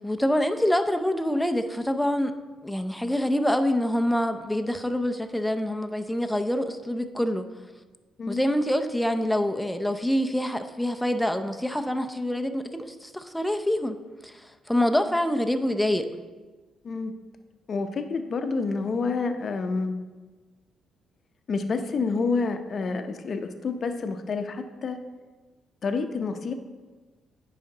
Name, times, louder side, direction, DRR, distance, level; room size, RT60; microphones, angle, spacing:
voice 1, 0.0-2.3 2.6-7.5 8.3-14.0 14.2-16.1, left 1 dB, 5° left, 7 dB, 0.5 m, -26 dB
voice 2, 17.7-19.9 21.5-25.0 25.8-26.5, left 4 dB, 50° left, 7 dB, 0.6 m, -28 dB
9.7 x 5.0 x 3.8 m, 1.3 s
cardioid pair, 90°, 0 cm